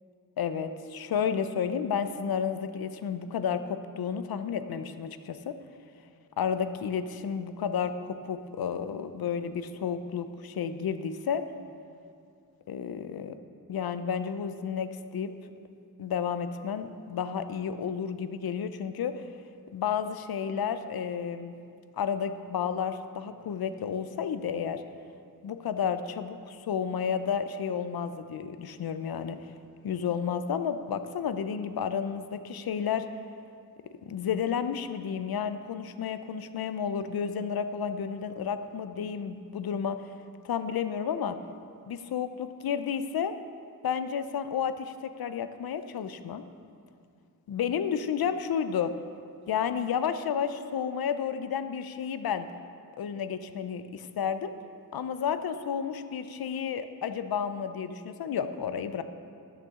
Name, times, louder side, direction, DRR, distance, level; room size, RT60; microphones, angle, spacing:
voice 1, 0.4-5.5 6.4-11.4 12.7-13.4 13.7-15.3 16.0-19.2 19.7-21.5 22.0-24.8 25.4-29.5 29.8-33.1 34.1-40.0 40.4-41.4 41.8-43.3 43.8-46.4 47.5-48.9 49.5-52.5 53.0-54.5 54.9-59.0, left 7 dB, 85° left, 11 dB, 0.5 m, -31 dB
12.5 x 6.8 x 3.6 m, 2.4 s
wide cardioid pair, 70°, 36 cm